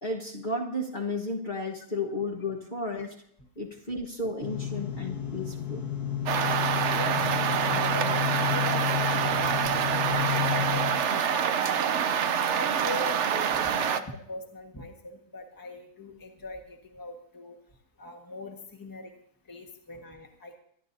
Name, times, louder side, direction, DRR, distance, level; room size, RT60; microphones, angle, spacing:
voice 1, 0.0-3.1 3.6-5.8, left 2 dB, 30° left, -3 dB, 1.5 m, -33 dB
sound 1, 4.4-10.9, left 10 dB, 70° left, 2.0 m, -31 dB
sound 2, 6.3-14.0, right 8 dB, 60° right, 0.8 m, -26 dB
voice 2, 6.9-12.0 12.5-17.6 18.0-19.1 19.4-20.6, left 2 dB, 15° left, 1 dB, 1.4 m, -41 dB
25.0 x 11.5 x 2.7 m, 0.68 s
omnidirectional pair, 1.7 m